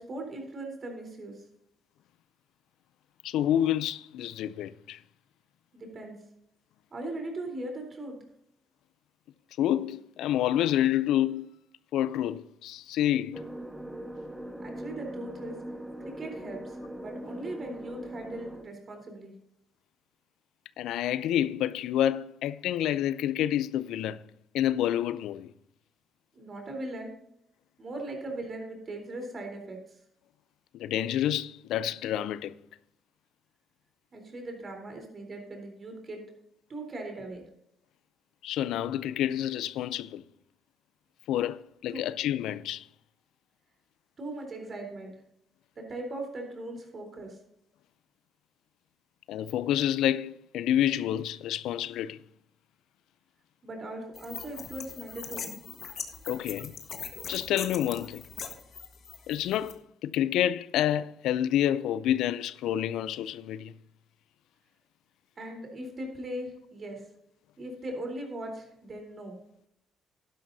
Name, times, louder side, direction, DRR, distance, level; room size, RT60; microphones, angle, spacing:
voice 1, 0.0-1.4 5.7-6.2 6.9-8.2 14.6-15.6 16.0-19.3 26.3-27.1 27.8-29.8 34.1-36.2 36.7-37.4 41.9-42.0 44.2-45.1 45.8-47.4 53.6-55.5 65.4-67.0 67.6-69.4, right 1 dB, 40° right, 3.8 m, -39 dB
voice 2, 3.2-5.0 9.6-11.5 11.9-13.4 20.8-24.2 24.5-25.5 30.7-32.5 38.4-40.2 41.3-42.9 49.3-52.2 56.3-56.7 57.3-58.2 59.3-63.7, left 11 dB, 85° left, 0.4 m, -28 dB
sound 1, 13.3-18.6, right 1 dB, 5° right, 1.4 m, -41 dB
sound 2, 54.2-59.7, left 6 dB, 55° left, 1.4 m, -41 dB
12.0 x 11.0 x 2.7 m
cardioid pair, 90°, 0 cm